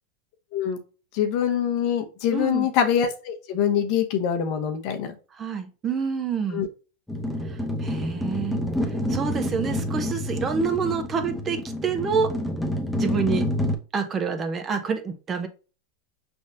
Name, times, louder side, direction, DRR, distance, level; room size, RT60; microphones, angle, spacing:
voice 1, 1.1-5.1 6.5-6.7, left 8 dB, 55° left, 7 dB, 0.9 m, -24 dB
voice 2, 2.3-2.7 5.3-6.7 7.5-8.6 9.1-12.3 12.9-13.5 13.9-15.5, right 5 dB, 30° right, 7 dB, 0.8 m, -27 dB
sound 1, 7.1-13.8, left 1 dB, 5° left, 0.9 m, -28 dB
5.2 x 3.5 x 2.6 m, 0.34 s
hypercardioid pair, 100°, 0 cm